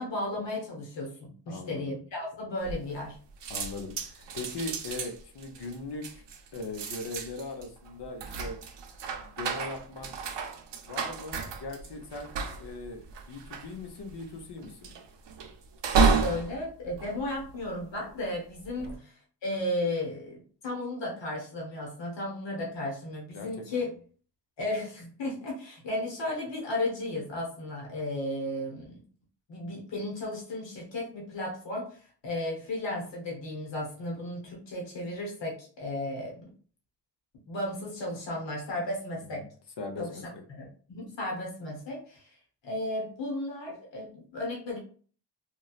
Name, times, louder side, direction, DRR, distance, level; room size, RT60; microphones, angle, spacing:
voice 1, 0.0-3.2 16.1-20.4 20.6-23.9 24.6-29.0 29.5-36.5 37.5-39.5 40.0-40.2 40.5-42.4 42.6-44.8, left 1 dB, 90° left, -3 dB, 1.2 m, -34 dB
voice 2, 1.5-2.0 3.5-6.2 6.5-8.6 9.2-10.1 10.8-12.3 12.6-14.9 18.8-19.0 23.3-23.9 39.3-39.5 39.8-40.4, left 3 dB, 70° left, 4 dB, 0.8 m, -40 dB
sound 1, 2.6-3.2 3.4-18.0 18.5-18.9, right 5 dB, 80° right, 0.6 m, -32 dB
3.1 x 2.3 x 2.4 m, 0.42 s
cardioid pair, 80°, 42 cm